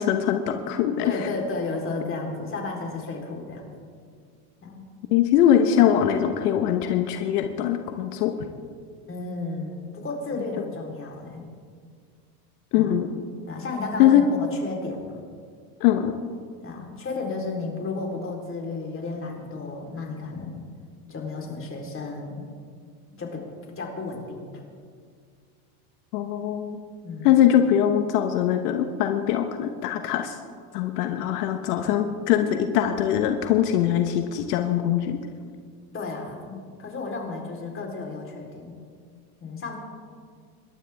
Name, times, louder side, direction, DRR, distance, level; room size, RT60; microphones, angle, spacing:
voice 1, 0.0-1.0 5.1-8.3 12.7-13.1 14.0-14.2 15.8-16.1 26.1-26.8 27.2-30.4 30.7-35.2, left 10 dB, 80° left, 6 dB, 1.2 m, -22 dB
voice 2, 1.0-3.7 4.6-4.9 9.1-11.4 12.7-12.9 13.5-15.2 16.6-20.7 21.1-22.4 23.2-23.4 23.8-24.6 27.0-27.4 35.9-38.7 39.4-39.8, left 3 dB, 25° left, 0 dB, 4.0 m, -33 dB
26.5 x 12.0 x 3.6 m, 2.1 s
supercardioid pair, 105°, 46 cm